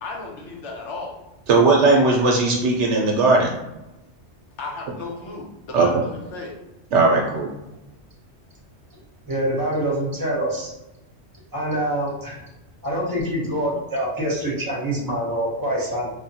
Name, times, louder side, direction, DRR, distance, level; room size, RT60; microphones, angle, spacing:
voice 1, 0.0-1.2 4.6-6.6, left 3 dB, 85° left, 0 dB, 1.0 m, -34 dB
voice 2, 1.5-3.5 5.7-6.0 6.9-7.5, right 3 dB, 80° right, 0 dB, 0.9 m, -17 dB
voice 3, 9.3-10.7 11.5-12.4 12.8-16.1, right 1 dB, 20° right, -5 dB, 0.8 m, -25 dB
3.2 x 2.1 x 2.7 m, 0.96 s
omnidirectional pair, 1.2 m